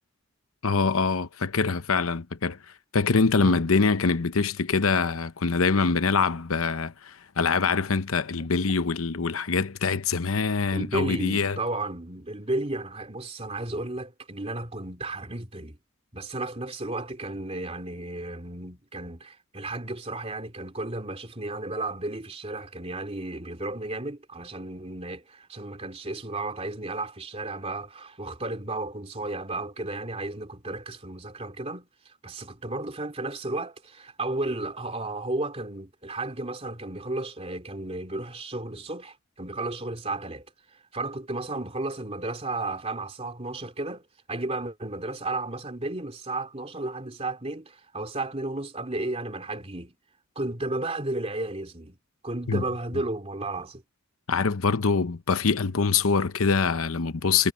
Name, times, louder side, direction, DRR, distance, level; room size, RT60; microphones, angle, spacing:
voice 1, 0.6-2.6 2.9-11.6 52.5-52.6 54.3-57.5, left 4 dB, 80° left, 0.8 m, -24 dB
voice 2, 10.7-15.8 16.1-40.5 40.9-44.0 44.3-49.9 50.3-52.0 52.2-53.8, right 2 dB, 30° right, 2.9 m, -33 dB
head